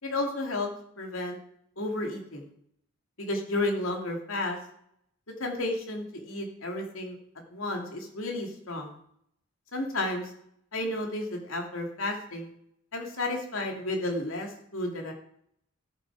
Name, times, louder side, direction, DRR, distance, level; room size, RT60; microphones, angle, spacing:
voice 1, 0.0-0.7 1.0-1.4 1.8-2.5 3.2-4.6 5.4-7.2 7.5-8.9 9.7-10.3 10.7-12.5 12.9-15.1, left 2 dB, 85° left, 2 dB, 2.8 m, -32 dB
14.0 x 8.8 x 4.9 m, 0.70 s
head